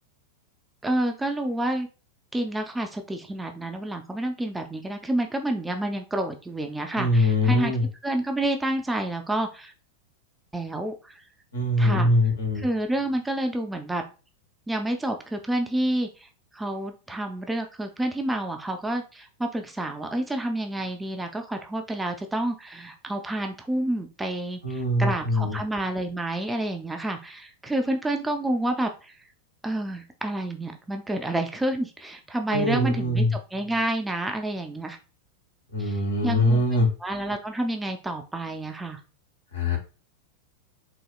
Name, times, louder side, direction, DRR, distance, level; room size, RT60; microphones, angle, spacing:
voice 1, 0.8-1.9 2.3-7.7 8.0-9.7 10.5-11.2 11.8-12.1 12.6-14.0 14.7-16.3 16.5-29.1 29.6-33.2 33.5-35.0 35.8-36.0 36.2-36.6 37.0-39.0, right 1 dB, 5° right, 4 dB, 0.4 m, -29 dB
voice 2, 6.9-7.8 11.5-12.6 24.6-25.6 32.5-33.3 35.7-36.9 39.5-39.8, left 1 dB, 65° left, 2 dB, 1.1 m, -22 dB
4.0 x 2.7 x 2.3 m, 0.33 s
figure-of-eight pair, 90°, 0 cm